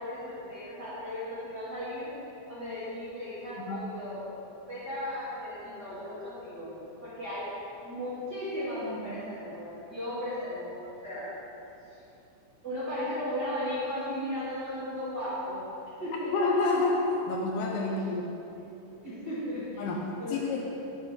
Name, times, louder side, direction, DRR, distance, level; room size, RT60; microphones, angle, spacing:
voice 1, 0.0-2.1 2.5-4.2 4.7-6.7 7.0-7.5 7.8-11.3 12.6-15.6 16.0-16.3 17.8-17.9 18.9-19.9 20.2-20.6, left 1 dB, 35° right, -12 dB, 1.8 m, -36 dB
voice 2, 16.3-18.3 19.8-20.0 20.3-20.6, left 3 dB, 80° left, 0 dB, 2.5 m, -28 dB
11.5 x 8.0 x 3.7 m, 3.0 s
omnidirectional pair, 5.0 m